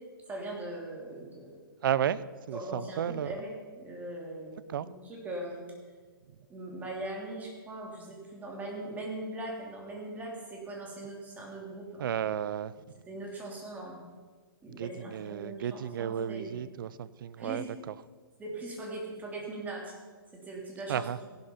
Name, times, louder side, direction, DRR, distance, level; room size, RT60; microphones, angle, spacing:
voice 1, 0.3-1.7 2.5-5.6 6.5-12.1 13.1-14.0 14.6-16.5 17.4-17.7 18.4-19.9 20.3-21.1, right 2 dB, 15° right, 3.2 m, -40 dB
voice 2, 1.8-3.4 4.7-4.9 12.0-12.7 14.7-17.6 20.9-21.2, right 9 dB, 60° right, 0.6 m, -33 dB
15.5 x 12.0 x 5.7 m
hypercardioid pair, 140°, 13 cm